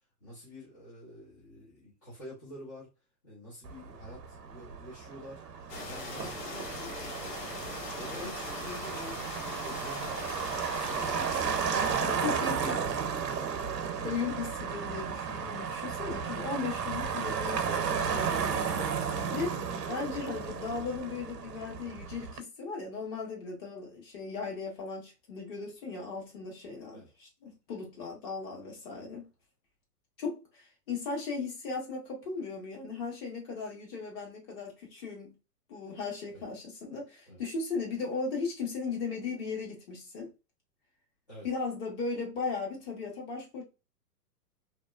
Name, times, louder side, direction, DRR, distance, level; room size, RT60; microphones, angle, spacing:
voice 1, 0.2-2.9 3.2-5.4 5.8-9.3 9.5-13.5 14.0-14.1 26.9-27.1 36.3-36.4 37.3-37.4 41.3-41.5, left 1 dB, 15° left, 0.4 m, -47 dB
Motor vehicle (road), 3.6-22.4, right 6 dB, 75° right, 0.7 m, -34 dB
sound 1, 5.7-12.0, left 2 dB, 75° left, 1.1 m, -40 dB
voice 2, 12.0-12.8 14.0-19.6 19.9-29.3 30.2-35.3 35.7-40.3 41.4-43.6, left 4 dB, 35° left, 1.3 m, -37 dB
2.7 x 2.1 x 2.3 m
hypercardioid pair, 125°, 48 cm